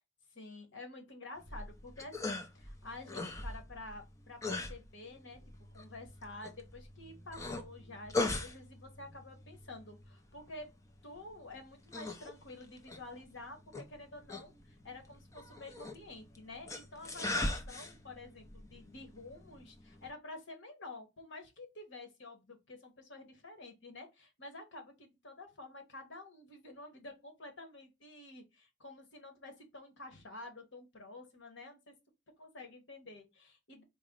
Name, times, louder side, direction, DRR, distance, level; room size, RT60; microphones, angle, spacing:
voice 1, 0.3-10.7 11.0-31.9 32.4-33.8, left 2 dB, 65° left, 1.1 m, -50 dB
sound 1, 1.4-20.1, left 2 dB, 15° left, 0.5 m, -42 dB
4.1 x 2.1 x 3.6 m
head